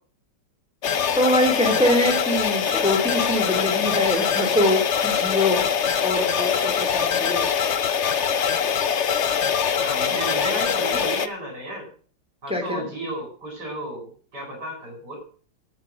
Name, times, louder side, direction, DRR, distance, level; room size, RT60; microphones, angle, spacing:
sound 1, 0.8-11.3, left 7 dB, 50° left, 0.8 m, -23 dB
voice 1, 1.1-5.6 6.0-7.5 12.5-12.8, left 1 dB, 5° right, 3 dB, 2.7 m, -23 dB
voice 2, 9.6-11.9 12.4-15.2, right 1 dB, 60° right, -3 dB, 5.3 m, -33 dB
10.5 x 8.7 x 7.5 m, 0.43 s
omnidirectional pair, 2.0 m